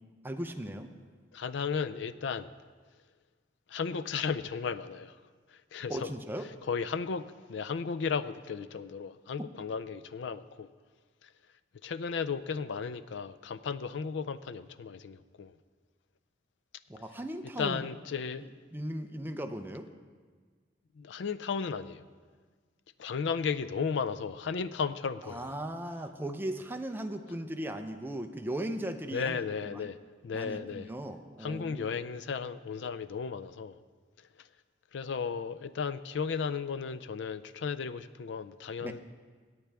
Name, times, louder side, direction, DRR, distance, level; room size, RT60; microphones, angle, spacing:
voice 1, 0.2-0.9 5.9-6.5 16.9-17.8 18.4-19.9 25.3-29.5 29.7-29.9 30.3-32.0 38.8-39.0, right 1 dB, 10° right, 5 dB, 0.6 m, -37 dB
voice 2, 1.3-2.5 3.7-5.2 5.7-6.1 6.7-10.7 11.2-11.3 11.8-15.6 17.6-18.5 21.0-22.0 23.0-25.6 29.1-30.0 30.2-30.9 31.4-33.8 34.4-34.5 34.9-39.0, left 5 dB, 65° left, 15 dB, 0.4 m, -34 dB
17.5 x 8.7 x 3.4 m, 1.5 s
head